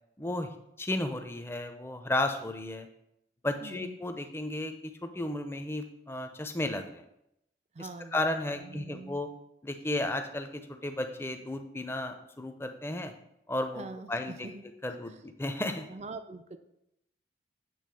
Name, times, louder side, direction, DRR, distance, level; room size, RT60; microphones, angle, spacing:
voice 1, 0.2-0.5 0.8-2.9 3.4-7.0 7.8-9.3 9.6-13.1 13.5-14.5 14.8-15.9, left 1 dB, 15° left, 6 dB, 0.6 m, -34 dB
voice 2, 3.6-4.0 7.7-8.3 8.6-9.2 13.8-14.6 15.9-16.6, right 3 dB, 40° right, 9 dB, 0.4 m, -44 dB
8.5 x 3.6 x 6.2 m, 0.81 s
head